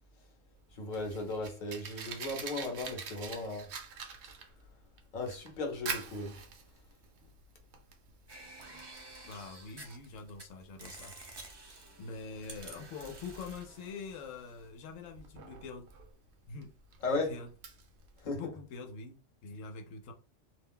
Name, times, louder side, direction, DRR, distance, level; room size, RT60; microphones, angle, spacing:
Fire, 0.6-18.3, right 6 dB, 65° right, 0.8 m, -46 dB
voice 1, 0.7-3.7 5.1-6.4 17.0-17.4 18.2-18.4, left 2 dB, 45° left, 0.8 m, -36 dB
sound 1, 8.3-10.4 10.8-14.7, right 2 dB, 35° right, 0.4 m, -51 dB
voice 2, 9.2-11.1 12.0-15.9 16.5-16.7 17.1-17.5 18.2-20.1, left 4 dB, 80° left, 1.0 m, -45 dB
2.4 x 2.1 x 3.6 m
omnidirectional pair, 1.3 m